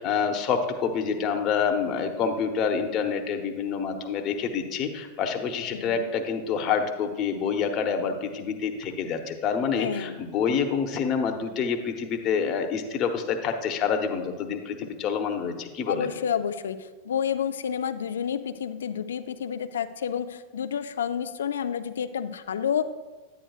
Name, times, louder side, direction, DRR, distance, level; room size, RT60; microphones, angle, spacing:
voice 1, 0.0-16.1, left 6 dB, 40° left, 5 dB, 0.9 m, -27 dB
voice 2, 5.7-6.1 9.8-10.2 15.9-16.8 17.0-22.9, left 8 dB, 75° left, 11 dB, 0.4 m, -29 dB
9.8 x 9.2 x 2.4 m, 1.3 s
hypercardioid pair, 95°, 0 cm